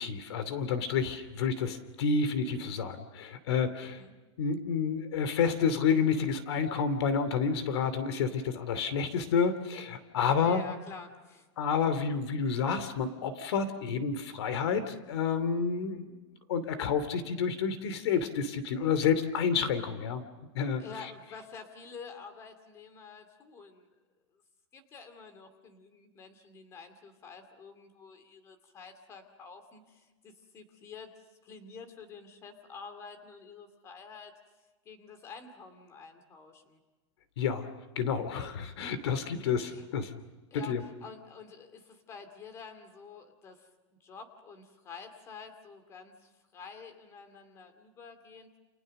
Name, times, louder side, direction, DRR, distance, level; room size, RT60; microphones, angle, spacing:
voice 1, 0.0-4.0 4.4-10.6 11.6-16.2 16.5-20.2 20.5-20.8 37.4-37.7 38.0-40.2 40.5-40.8, left 6 dB, 60° left, 12 dB, 2.8 m, -29 dB
voice 2, 3.8-4.1 10.4-11.5 20.8-23.9 24.7-31.1 31.4-34.3 34.8-36.8 39.3-39.9 40.5-43.7 44.0-48.5, left 5 dB, 20° left, 8 dB, 2.4 m, -49 dB
29.5 x 28.5 x 6.6 m, 1.2 s
supercardioid pair, 175°, 15 cm